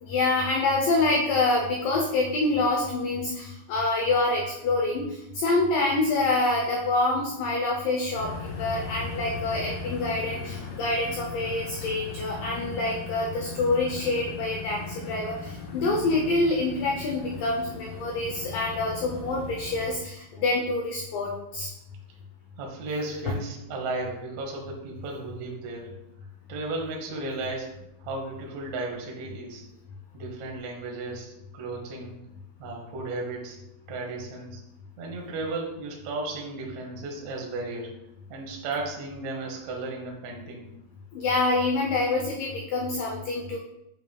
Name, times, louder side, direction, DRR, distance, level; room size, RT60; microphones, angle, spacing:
voice 1, 0.0-21.7 41.1-43.6, left 2 dB, 85° left, 0 dB, 1.9 m, -26 dB
sound 1, 8.1-20.0, left 4 dB, 70° left, 3.0 m, -38 dB
voice 2, 22.6-25.9 26.5-27.7 28.0-29.7 30.1-32.2 32.6-33.6 33.9-34.6 35.0-37.9 38.3-40.6, right 2 dB, 70° right, 0 dB, 1.7 m, -34 dB
7.9 x 5.6 x 2.3 m, 0.85 s
omnidirectional pair, 5.0 m